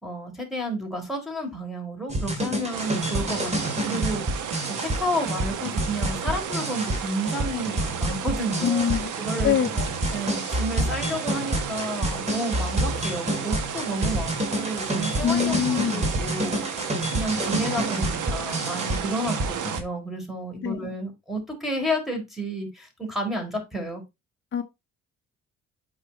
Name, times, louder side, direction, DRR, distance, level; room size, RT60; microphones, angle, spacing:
voice 1, 0.0-4.5 4.8-8.8 9.2-9.6 10.1-24.0, right 1 dB, ahead, 4.3 m, -31 dB
sound 1, 2.1-19.8, right 1 dB, 20° right, 2.5 m, -28 dB
sound 2, 2.7-19.8, right 8 dB, 80° right, 1.4 m, -33 dB
voice 2, 8.6-9.1 9.4-9.9 15.2-16.1 20.6-20.9 24.5-24.6, left 8 dB, 40° left, 0.7 m, -24 dB
8.2 x 5.4 x 4.2 m
cardioid pair, 90°, 30 cm